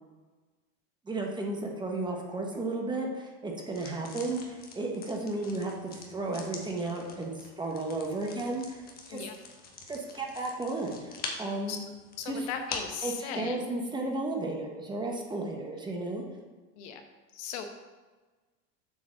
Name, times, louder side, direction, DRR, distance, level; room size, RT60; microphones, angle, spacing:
voice 1, 1.1-9.2 9.9-11.8 12.2-12.5 13.0-16.2, right 2 dB, 10° right, 1 dB, 1.0 m, -34 dB
sound 1, 3.7-13.0, left 3 dB, 25° left, 1.2 m, -45 dB
voice 2, 12.2-13.6 16.8-17.0 17.4-17.7, left 7 dB, 60° left, 5 dB, 1.1 m, -37 dB
7.4 x 3.9 x 6.4 m, 1.3 s
supercardioid pair, 130°, 39 cm